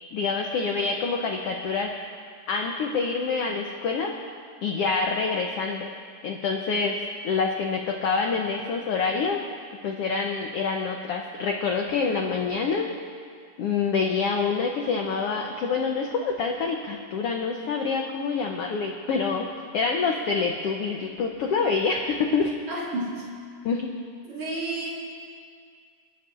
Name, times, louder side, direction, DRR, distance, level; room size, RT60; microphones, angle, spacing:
voice 1, 0.1-1.9 2.5-4.1 4.6-5.9 6.2-7.0 7.2-9.4 9.8-12.9 13.6-22.5 23.6-23.9, left 5 dB, 80° left, 1 dB, 1.3 m, -26 dB
voice 2, 22.7-23.3 24.2-24.9, right 2 dB, 50° right, -4 dB, 2.6 m, -31 dB
29.0 x 10.0 x 2.5 m, 2.1 s
omnidirectional pair, 3.7 m